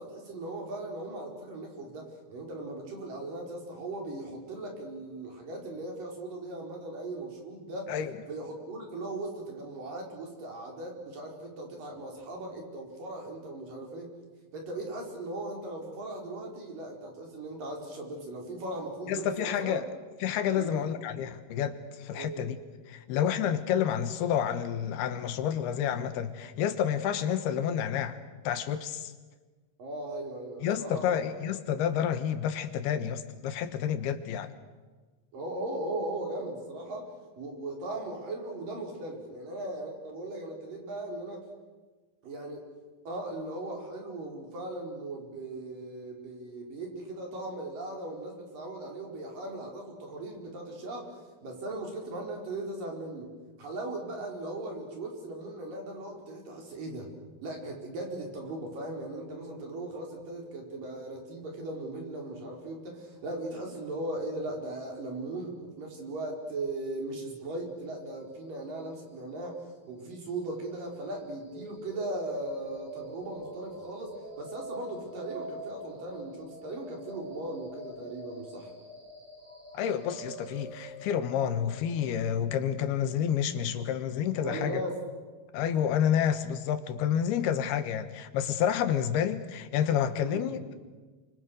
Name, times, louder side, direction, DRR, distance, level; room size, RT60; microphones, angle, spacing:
voice 1, 0.0-7.9 8.3-14.1 14.5-19.8 20.6-20.9 22.1-22.5 29.8-31.6 35.3-37.1 37.4-41.4 42.2-42.6 43.1-51.1 51.4-53.3 53.6-57.1 57.4-78.7 84.4-85.0 90.2-90.6, right 2 dB, 60° right, 1 dB, 6.2 m, -38 dB
voice 2, 19.1-19.9 20.2-22.6 22.9-28.2 28.5-29.1 30.6-34.5 79.7-84.8 85.5-90.7, left 9 dB, 90° left, 10 dB, 3.4 m, -29 dB
sound 1, 71.5-85.4, right 1 dB, 25° right, 5.0 m, -46 dB
29.0 x 25.5 x 6.5 m, 1.3 s
omnidirectional pair, 4.4 m